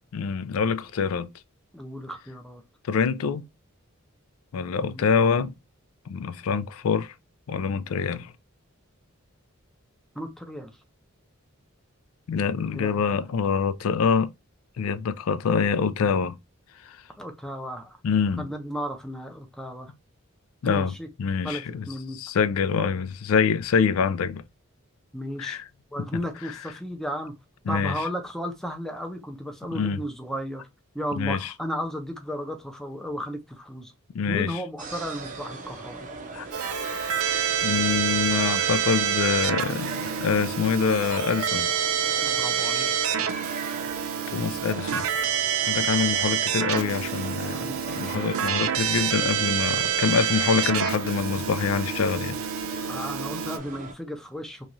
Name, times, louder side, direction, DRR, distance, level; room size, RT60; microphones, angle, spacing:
voice 1, 0.1-1.3 2.8-3.4 4.5-5.5 6.1-7.1 7.5-8.3 12.3-14.3 14.8-16.4 16.8-17.0 18.0-18.4 20.6-20.9 21.2-21.9 22.1-24.4 25.4-25.6 27.7-28.0 29.7-30.0 31.2-31.5 34.1-34.6 36.3-36.5 37.6-41.7 42.6-42.8 44.3-45.1 45.7-52.4 52.7-52.9 53.3-53.4, left 6 dB, 90° left, 0.4 m, -25 dB
voice 2, 1.7-2.6 4.9-5.0 10.1-10.7 12.7-13.3 17.2-18.0 18.4-19.9 20.6-21.1 21.4-22.2 22.8-22.9 25.1-25.6 25.9-27.3 27.7-30.6 30.9-33.9 34.3-36.0 42.2-42.9 47.5-47.8 52.9-54.7, equal, ahead, 0.5 m, -34 dB
sound 1, 34.8-53.9, right 3 dB, 40° right, 0.6 m, -38 dB
Keyboard (musical), 36.5-53.6, right 8 dB, 85° right, 0.4 m, -27 dB
3.0 x 2.3 x 2.5 m
head